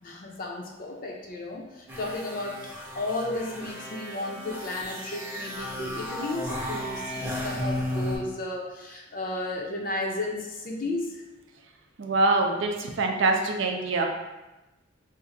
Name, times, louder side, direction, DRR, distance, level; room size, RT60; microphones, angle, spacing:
voice 1, 0.0-11.2, left 2 dB, 45° left, 0 dB, 0.5 m, -34 dB
sound 1, 1.9-8.2, left 1 dB, 10° right, 0.6 m, -34 dB
voice 2, 12.0-14.1, right 3 dB, 70° right, 3 dB, 0.4 m, -24 dB
2.6 x 2.5 x 3.9 m, 1.0 s
head